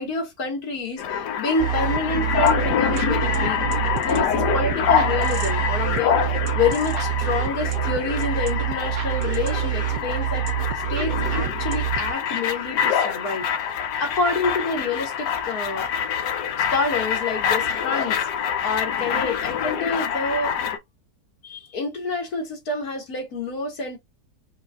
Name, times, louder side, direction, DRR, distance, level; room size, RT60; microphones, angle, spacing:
voice 1, 0.0-3.6 4.0-10.4 10.9-13.5 14.0-15.9 16.6-18.2 18.6-20.5 21.4-24.0, left 3 dB, 60° left, 2.1 m, -28 dB
sound 1, 1.0-20.8, left 8 dB, 75° left, 1.4 m, -25 dB
sound 2, 1.6-12.1, right 14 dB, 70° right, 1.1 m, -27 dB
5.2 x 2.6 x 2.3 m
omnidirectional pair, 1.9 m